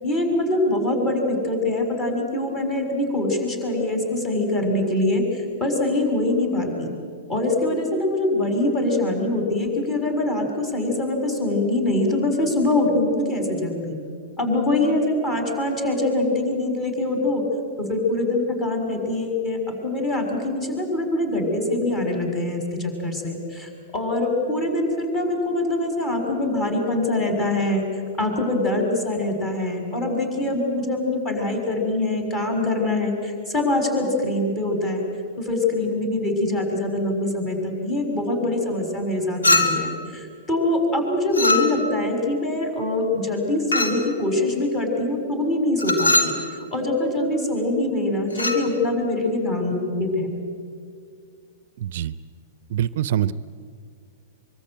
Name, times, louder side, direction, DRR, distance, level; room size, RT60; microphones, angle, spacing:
voice 1, 0.0-6.9 7.3-14.0 14.4-17.4 17.8-27.8 28.2-35.0 35.4-46.4 46.7-50.4, left 2 dB, 25° left, 3 dB, 6.6 m, -24 dB
Chink clink, 39.4-40.0 41.3-42.0 43.7-44.1 45.8-46.4 48.3-48.7, left 2 dB, 80° left, 3.0 m, -21 dB
voice 2, 51.8-52.1 52.7-53.3, right 11 dB, 55° right, 17 dB, 0.6 m, -24 dB
24.5 x 23.5 x 9.1 m, 2.2 s
figure-of-eight pair, 105°, 0 cm